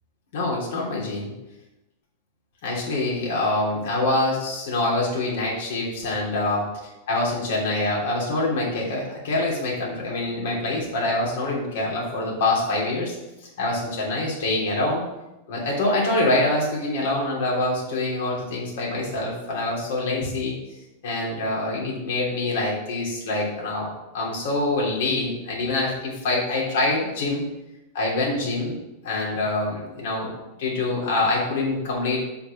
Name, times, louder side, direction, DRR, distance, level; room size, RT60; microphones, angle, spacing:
voice 1, 0.3-1.3 2.6-6.6 7.1-13.1 13.6-15.0 15.5-20.5 21.0-23.9 24.1-27.4 27.9-28.8 29.0-32.2, left 2 dB, 55° left, -3 dB, 3.2 m, -25 dB
6.8 x 5.8 x 6.2 m, 0.95 s
figure-of-eight pair, 90°, 0 cm